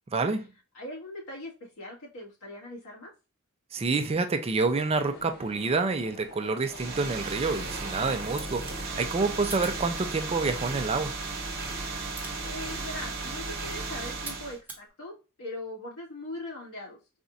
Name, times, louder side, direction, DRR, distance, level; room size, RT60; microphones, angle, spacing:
voice 1, 0.1-0.5 3.7-11.2, right 3 dB, 25° right, 0.4 m, -28 dB
voice 2, 0.7-3.1 12.4-17.0, left 1 dB, 75° left, 1.8 m, -40 dB
sound 1, 4.7-10.6, left 3 dB, 45° left, 0.6 m, -49 dB
sound 2, 6.6-14.6, right 3 dB, 45° right, 1.0 m, -35 dB
sound 3, 8.3-14.9, right 3 dB, 10° right, 0.8 m, -48 dB
4.1 x 2.5 x 2.5 m
head